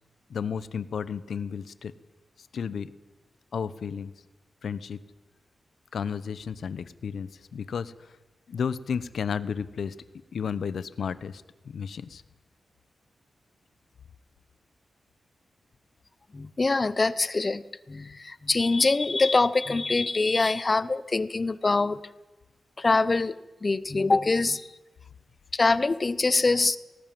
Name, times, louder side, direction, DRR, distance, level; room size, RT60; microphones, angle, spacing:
voice 1, 0.3-1.9 2.4-2.9 3.5-4.1 4.6-5.0 5.9-8.2 8.5-9.9 10.3-12.2, left 6 dB, 75° left, 16 dB, 1.0 m, -33 dB
voice 2, 16.3-17.6 17.9-22.0 22.8-24.7 25.5-26.8, left 3 dB, 35° left, 16 dB, 0.9 m, -24 dB
19.5 x 18.5 x 7.8 m, 1.1 s
wide cardioid pair, 90°, 0 cm